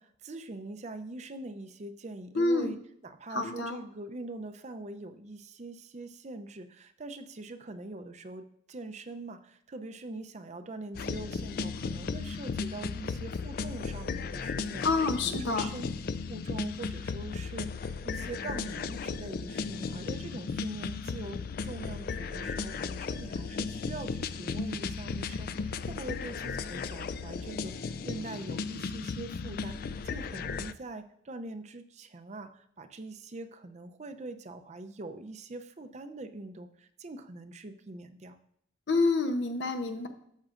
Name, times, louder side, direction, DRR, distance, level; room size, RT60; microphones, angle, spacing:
voice 1, 0.0-14.9 15.2-15.9 16.3-38.4, right 2 dB, 35° right, 9 dB, 0.5 m, -43 dB
voice 2, 2.3-2.7 3.3-3.8 14.8-15.7 38.9-40.1, left 3 dB, 70° left, 7 dB, 0.8 m, -28 dB
sound 1, 10.9-30.7, left 5 dB, 50° left, 0.3 m, -35 dB
12.5 x 7.4 x 2.5 m, 0.70 s
head